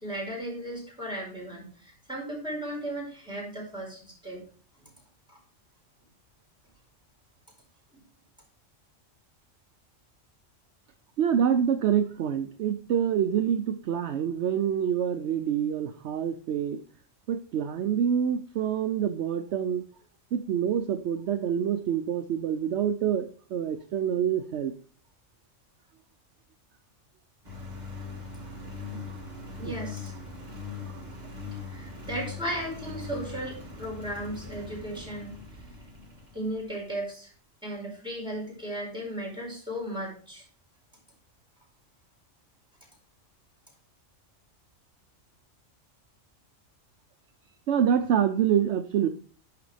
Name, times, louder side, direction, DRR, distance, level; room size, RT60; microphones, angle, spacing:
voice 1, 0.0-4.4 5.3-5.4 29.6-30.1 31.7-35.4 36.3-37.3 37.6-40.4, right 1 dB, 5° right, -3 dB, 4.4 m, -36 dB
voice 2, 11.2-16.8 17.3-19.8 20.3-24.7 28.9-29.2 29.6-29.7 30.9-31.0 47.7-49.1, right 8 dB, 65° right, 7 dB, 0.9 m, -26 dB
Engine, 27.4-36.9, left 4 dB, 35° right, 1.9 m, -41 dB
11.5 x 5.0 x 3.3 m, 0.42 s
omnidirectional pair, 1.3 m